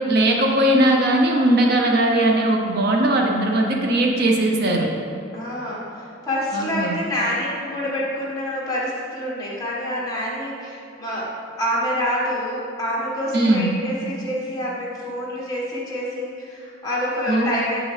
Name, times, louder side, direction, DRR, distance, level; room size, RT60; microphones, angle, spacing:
voice 1, 0.1-4.9 6.5-7.0 13.3-13.7 17.3-17.5, right 1 dB, 55° right, 0 dB, 0.7 m, -19 dB
voice 2, 5.3-11.3 11.6-17.8, equal, 20° left, -6 dB, 1.5 m, -27 dB
7.9 x 6.2 x 3.3 m, 2.7 s
head